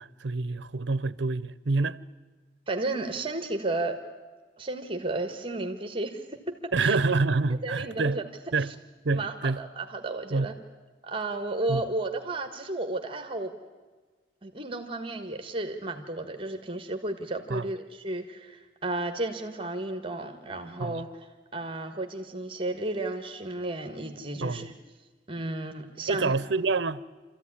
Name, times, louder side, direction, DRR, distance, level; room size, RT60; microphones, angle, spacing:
voice 1, 0.0-2.0 6.7-8.2 8.5-8.7 9.0-9.6 10.3-10.5 11.7-11.8 17.5-17.7 20.8-21.0 24.4-24.7 26.1-27.0, right 3 dB, 70° right, 0.7 m, -27 dB
voice 2, 2.7-4.0 4.6-7.0 7.6-8.7 9.1-10.5 11.0-13.5 14.4-24.7 25.3-26.3, right 2 dB, 30° right, 1.5 m, -33 dB
27.0 x 14.5 x 9.8 m
head